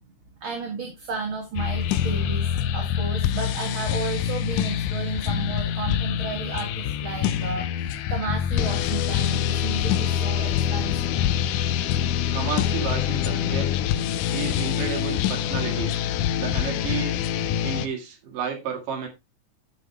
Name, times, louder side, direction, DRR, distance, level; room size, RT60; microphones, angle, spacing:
voice 1, 0.4-11.2, right 5 dB, 45° right, 2.3 m, -33 dB
sound 1, 1.6-17.9, left 9 dB, 80° left, 2.2 m, -25 dB
voice 2, 12.3-13.8 14.3-15.9 16.4-17.1 17.6-19.1, right 7 dB, 85° right, 3.7 m, -32 dB
10.5 x 7.6 x 3.3 m
omnidirectional pair, 3.7 m